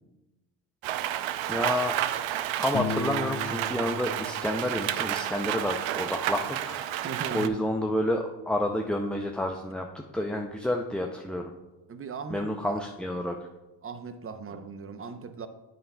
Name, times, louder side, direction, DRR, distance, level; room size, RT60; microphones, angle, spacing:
Rain, 0.8-7.5, right 12 dB, 75° right, 0.6 m, -31 dB
voice 1, 1.5-2.0 2.6-7.0 7.3-11.5 12.3-13.5, left 1 dB, ahead, 0.4 m, -30 dB
Piano, 2.7-5.5, left 4 dB, 40° left, 1.3 m, -36 dB
voice 2, 7.0-7.5 11.9-12.8 13.8-15.5, right 5 dB, 30° right, 0.7 m, -38 dB
9.2 x 8.8 x 2.2 m
supercardioid pair, 75°, 47 cm